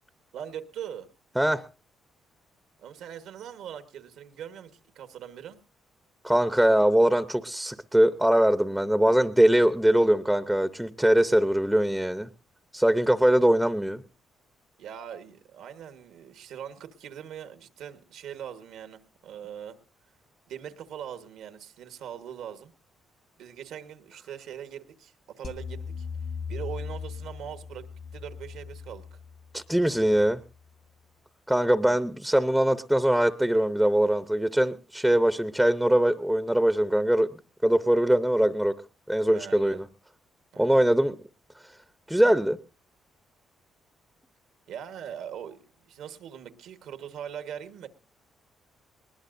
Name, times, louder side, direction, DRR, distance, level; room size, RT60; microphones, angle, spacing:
voice 1, 0.3-1.1 2.8-5.6 14.8-19.8 20.5-22.7 23.4-26.1 26.5-29.2 39.3-39.8 40.5-40.8 44.7-47.9, right 9 dB, 85° right, 10 dB, 1.3 m, -41 dB
voice 2, 6.2-12.3 12.7-14.0 29.5-30.4 31.5-38.8 39.1-39.9 40.6-41.1 42.1-42.6, right 1 dB, 5° right, 12 dB, 0.7 m, -22 dB
sound 1, 25.4-30.7, left 6 dB, 55° left, 1.8 m, -39 dB
20.0 x 19.5 x 2.6 m, 0.31 s
cardioid pair, 90°, 0 cm